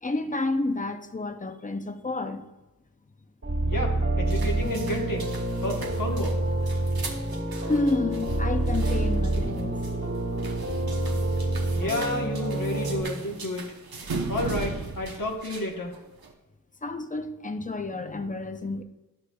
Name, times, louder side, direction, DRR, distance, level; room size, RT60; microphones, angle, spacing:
voice 1, 0.0-2.5 3.5-3.8 7.7-9.8 16.8-18.8, left 2 dB, 25° left, 0.5 m, -30 dB
sound 1, 3.4-13.0, right 1 dB, 45° right, 2.0 m, -27 dB
voice 2, 3.7-5.3 5.6-6.4 11.7-13.6 14.3-15.9, left 1 dB, 65° left, 1.3 m, -31 dB
sound 2, 4.3-16.3, right 3 dB, 80° right, 0.9 m, -39 dB
11.5 x 6.3 x 2.3 m
wide cardioid pair, 85°, 36 cm